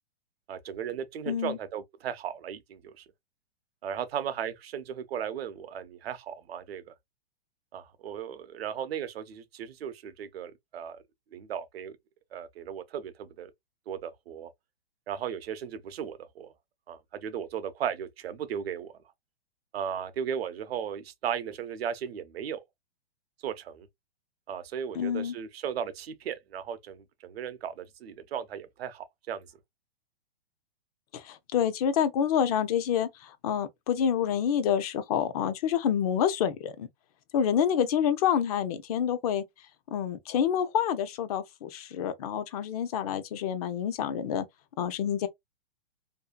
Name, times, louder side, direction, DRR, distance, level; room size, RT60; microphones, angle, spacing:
voice 1, 0.5-3.0 3.8-6.9 7.7-11.0 11.3-12.0 12.3-13.5 13.9-14.5 15.1-16.5 16.9-18.9 19.7-22.6 23.4-23.9 24.5-29.5, right 8 dB, 80° right, 0.6 m, -36 dB
voice 2, 1.3-1.6 24.9-25.3 31.1-36.9 37.3-39.4 39.9-44.4 44.8-45.3, left 8 dB, 40° left, 0.4 m, -28 dB
2.6 x 2.4 x 2.2 m
hypercardioid pair, 145°, 30 cm